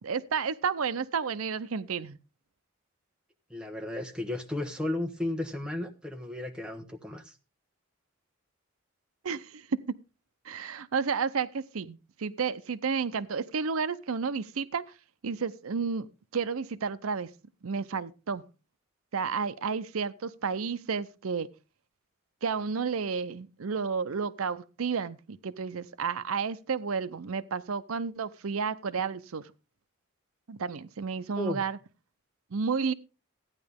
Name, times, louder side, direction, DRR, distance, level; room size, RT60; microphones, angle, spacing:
voice 1, 0.0-2.2 9.2-9.7 10.5-14.9 15.2-16.1 16.3-17.3 17.6-18.4 19.1-21.5 22.4-29.5 30.5-31.8 32.5-32.9, right 5 dB, 85° right, 0.6 m, -31 dB
voice 2, 3.5-7.3 31.4-31.6, left 1 dB, 5° right, 1.1 m, -34 dB
14.5 x 9.6 x 3.5 m
head